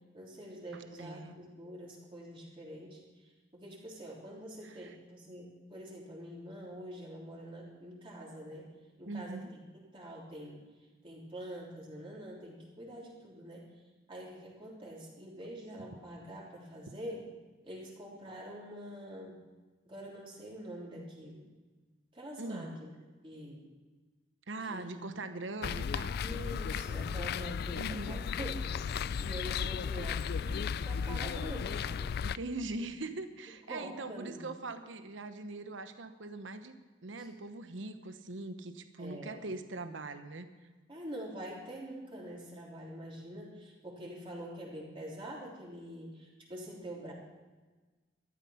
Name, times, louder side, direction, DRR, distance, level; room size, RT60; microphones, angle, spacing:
voice 1, 0.1-8.7 9.0-9.6 9.9-10.7 11.0-13.7 14.1-17.3 17.6-19.4 19.8-21.5 22.1-22.9 23.2-23.7 24.6-25.0 26.2-32.2 33.7-34.5 37.2-37.3 39.0-39.4 40.9-47.1, right 1 dB, 30° right, -4 dB, 3.4 m, -45 dB
voice 2, 0.7-1.3 4.6-5.0 9.0-9.4 22.4-22.8 24.5-26.2 27.7-28.3 32.2-36.7 37.0-40.5, right 2 dB, 80° right, 9 dB, 1.0 m, -41 dB
sound 1, 25.6-32.4, left 6 dB, 55° left, 0.3 m, -35 dB
13.5 x 12.0 x 5.8 m, 1.3 s
head